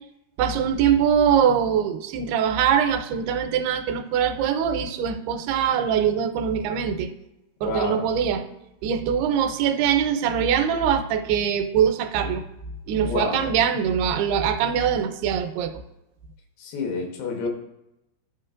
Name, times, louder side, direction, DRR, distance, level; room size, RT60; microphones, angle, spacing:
voice 1, 0.4-7.1 7.6-8.4 8.8-12.4 12.9-15.7, right 8 dB, 85° right, 8 dB, 2.5 m, -22 dB
voice 2, 7.6-8.2 13.0-13.5 16.6-17.5, left 4 dB, 85° left, 2 dB, 3.1 m, -29 dB
13.5 x 5.0 x 2.5 m, 0.89 s
omnidirectional pair, 4.5 m